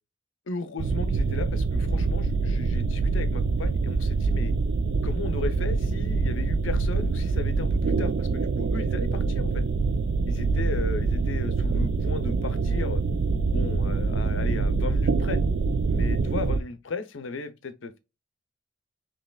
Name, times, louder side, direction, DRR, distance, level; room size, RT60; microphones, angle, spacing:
voice 1, 0.5-4.5 5.0-9.6 10.3-13.0 13.5-15.4 15.9-18.0, left 4 dB, 75° left, 0.6 m, -36 dB
sound 1, 0.8-16.6, right 4 dB, 60° right, 0.4 m, -25 dB
5.4 x 3.0 x 2.3 m
head